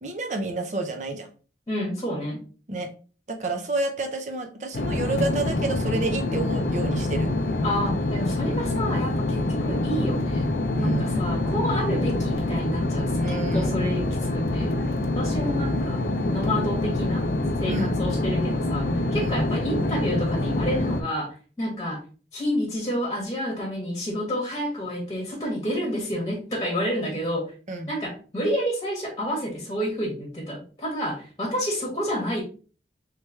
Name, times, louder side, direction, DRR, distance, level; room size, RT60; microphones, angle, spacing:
voice 1, 0.0-1.3 2.7-2.9 3.3-7.3 10.8-11.1 13.2-13.8 17.7-18.0 19.1-19.4 27.7-27.9, right 2 dB, 40° right, 4 dB, 0.7 m, -29 dB
voice 2, 1.7-2.4 7.6-10.5 10.8-14.8 15.1-16.0 16.3-17.3 17.6-22.0 22.3-27.5 27.9-32.4, equal, 20° left, -3 dB, 1.4 m, -29 dB
sound 1, 4.7-21.0, left 2 dB, 60° left, 0.5 m, -26 dB
3.3 x 3.3 x 3.2 m, 0.37 s
head